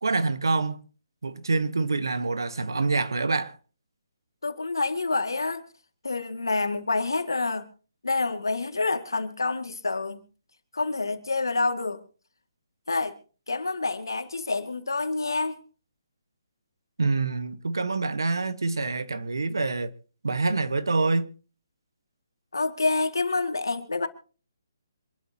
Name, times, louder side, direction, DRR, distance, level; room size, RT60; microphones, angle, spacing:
voice 1, 0.0-0.8 1.2-3.6 17.0-19.9 20.2-21.3, right 3 dB, 80° right, 1.3 m, -26 dB
voice 2, 4.4-5.6 6.0-7.6 8.0-10.2 10.7-12.0 12.9-13.2 13.5-15.6 22.5-24.1, left 3 dB, 85° left, 2.1 m, -27 dB
26.0 x 12.5 x 2.9 m
figure-of-eight pair, 145°, 2 cm